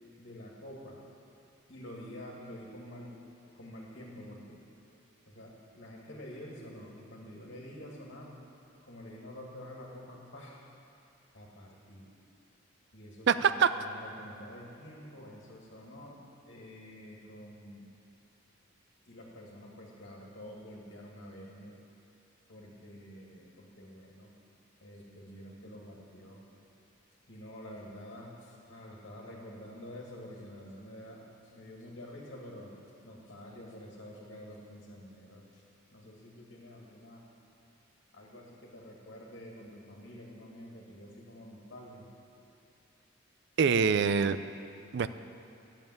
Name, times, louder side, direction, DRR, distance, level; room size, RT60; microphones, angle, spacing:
voice 1, 0.2-1.0 1.7-3.1 3.5-4.6 5.3-8.3 8.8-10.6 11.3-12.1 12.9-16.2 16.5-17.8 19.1-21.8 22.5-24.3 24.8-26.4 27.3-32.7 33.0-35.6 35.9-37.2 38.1-42.1, equal, 60° left, -3 dB, 2.1 m, -48 dB
voice 2, 13.3-13.7 43.6-44.4 44.9-45.1, right 6 dB, 60° right, 12 dB, 0.4 m, -24 dB
12.5 x 7.3 x 9.3 m, 2.6 s
head